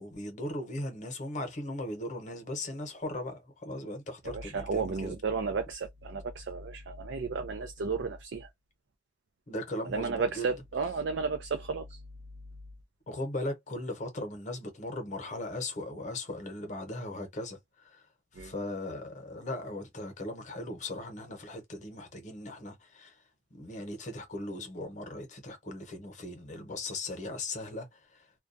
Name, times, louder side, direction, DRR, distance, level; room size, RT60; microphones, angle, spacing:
voice 1, 0.0-5.1 9.5-10.5 13.1-18.0 18.3-23.1 23.5-28.2, left 1 dB, 40° left, 0.8 m, -38 dB
voice 2, 4.2-8.5 9.9-12.0 18.4-18.5, right 4 dB, 75° right, 0.4 m, -33 dB
2.2 x 2.2 x 2.5 m
head